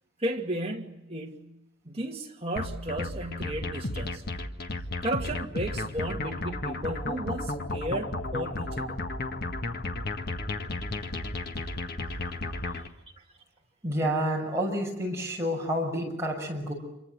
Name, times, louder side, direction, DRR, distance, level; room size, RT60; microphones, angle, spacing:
voice 1, 0.2-1.5 1.8-4.2 5.0-9.0 12.1-12.2, right 1 dB, 30° right, 2.5 m, -34 dB
sound 1, 2.6-12.9, left 2 dB, 50° left, 1.7 m, -33 dB
voice 2, 13.8-16.7, equal, 15° right, 6.5 m, -29 dB
28.0 x 23.5 x 7.9 m
head